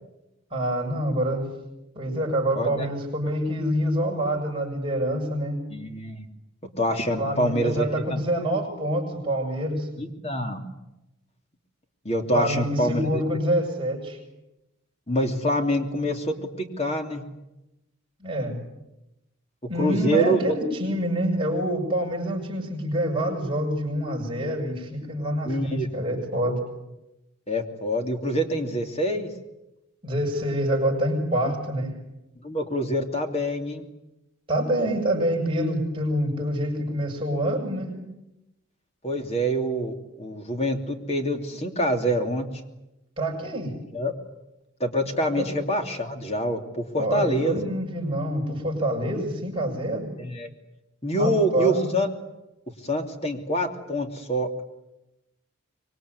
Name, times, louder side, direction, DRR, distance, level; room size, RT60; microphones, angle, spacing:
voice 1, 0.5-1.4 2.0-5.6 7.2-9.9 12.3-14.2 18.2-18.6 19.7-26.6 30.0-31.9 34.5-38.0 43.2-43.7 45.4-45.5 47.0-50.1 51.2-51.9, right 1 dB, 25° right, -1 dB, 7.3 m, -26 dB
voice 2, 2.6-2.9 5.7-6.3 6.8-8.2 10.0-10.6 12.0-13.2 15.1-17.2 19.8-20.4 25.4-25.9 27.5-29.3 32.4-33.8 39.0-42.5 43.9-44.1 44.8-47.6 50.2-50.5 51.0-52.1 52.8-54.5, equal, 30° left, 5 dB, 2.9 m, -26 dB
25.5 x 23.5 x 9.7 m, 0.94 s
head